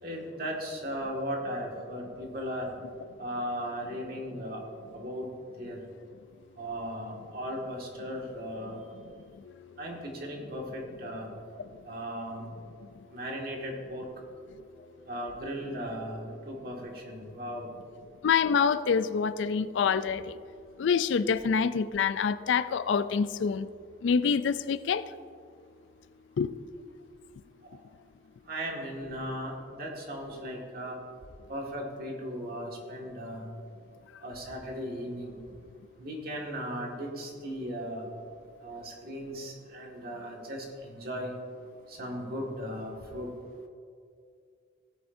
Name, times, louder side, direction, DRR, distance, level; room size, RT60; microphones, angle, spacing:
voice 1, 0.0-2.7 3.2-4.6 4.9-5.3 5.6-5.8 6.6-8.8 9.8-11.3 11.9-12.4 13.1-14.1 15.1-17.7 27.7-27.8 28.5-31.0 31.5-33.5 34.2-35.4 36.0-38.1 38.6-41.3 41.9-43.3, equal, 50° right, -1 dB, 1.8 m, -37 dB
voice 2, 18.2-20.3 20.8-23.7 24.0-25.0 26.4-26.5, left 6 dB, 70° left, 14 dB, 0.4 m, -26 dB
16.5 x 9.2 x 2.6 m, 2.4 s
head